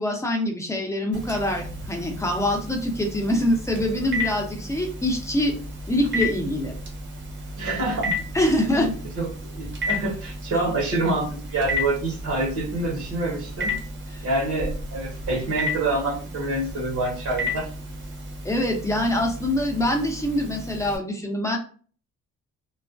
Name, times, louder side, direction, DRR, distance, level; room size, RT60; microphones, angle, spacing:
voice 1, 0.0-5.5 5.9-6.7 8.3-8.9 14.1-14.2 18.4-21.6, left 1 dB, 10° left, 1 dB, 0.7 m, -24 dB
Telephone, 1.1-21.0, left 1 dB, 40° right, 0.8 m, -33 dB
voice 2, 7.6-8.1 8.4-8.9 9.2-13.8 14.2-17.7, right 2 dB, 70° right, -4 dB, 1.1 m, -27 dB
2.4 x 2.1 x 2.4 m, 0.41 s
cardioid pair, 90°, 30 cm